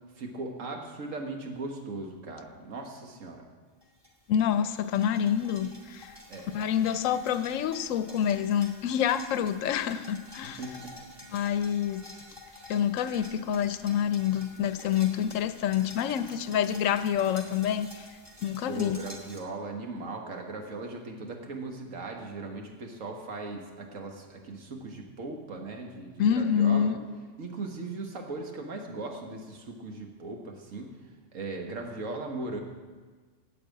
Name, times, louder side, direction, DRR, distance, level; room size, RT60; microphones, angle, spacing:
voice 1, 0.2-3.4 6.3-6.5 10.4-11.4 18.7-26.9 27.4-31.0 31.3-32.6, right 3 dB, 75° right, 2 dB, 1.8 m, -38 dB
sound 1, 3.8-19.4, left 1 dB, 20° right, 1.9 m, -49 dB
voice 2, 4.3-6.1 6.5-10.6 11.3-12.0 12.7-18.1 18.4-19.0 26.2-27.0, left 9 dB, 85° left, 11 dB, 1.0 m, -27 dB
8.8 x 8.6 x 8.5 m, 1.4 s
omnidirectional pair, 1.4 m